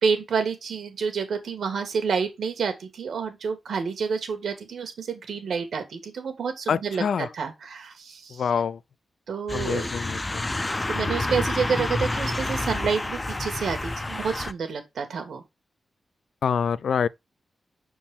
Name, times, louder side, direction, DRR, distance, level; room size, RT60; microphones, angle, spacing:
voice 1, 0.0-8.5 9.3-9.9 10.9-15.4, right 6 dB, 90° right, 1.9 m, -29 dB
voice 2, 6.7-7.3 8.3-8.8 9.5-10.4 16.4-17.1, left 7 dB, 80° left, 0.4 m, -26 dB
sound 1, 9.5-14.5, left 2 dB, 20° left, 0.5 m, -29 dB
6.9 x 4.6 x 3.5 m
wide cardioid pair, 140°, 0 cm